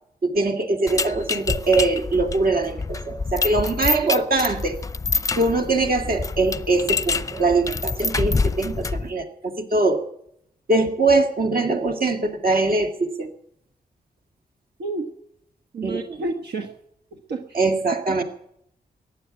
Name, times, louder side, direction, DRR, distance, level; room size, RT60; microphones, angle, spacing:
voice 1, 0.2-4.8 5.3-10.0 10.7-13.3 15.8-16.2 17.5-18.2, right 3 dB, 60° right, 5 dB, 2.2 m, -22 dB
sound 1, 0.9-9.1, left 4 dB, 20° left, 0.6 m, -27 dB
voice 2, 15.7-16.7 17.1-17.6 18.1-18.2, right 3 dB, 85° right, 5 dB, 1.4 m, -30 dB
15.0 x 9.9 x 9.3 m, 0.73 s
wide cardioid pair, 95°, 17 cm